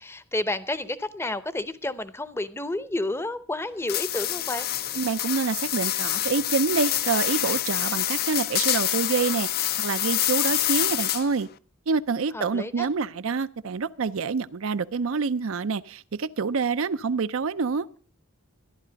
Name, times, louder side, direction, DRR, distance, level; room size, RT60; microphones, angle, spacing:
voice 1, 0.0-4.7 12.3-12.9, left 2 dB, 10° left, 0.7 m, -30 dB
sound 1, 3.9-11.4, left 13 dB, 45° left, 0.5 m, -26 dB
voice 2, 5.0-11.5 11.9-17.9, right 5 dB, 60° right, 0.5 m, -27 dB
14.0 x 11.0 x 5.1 m
head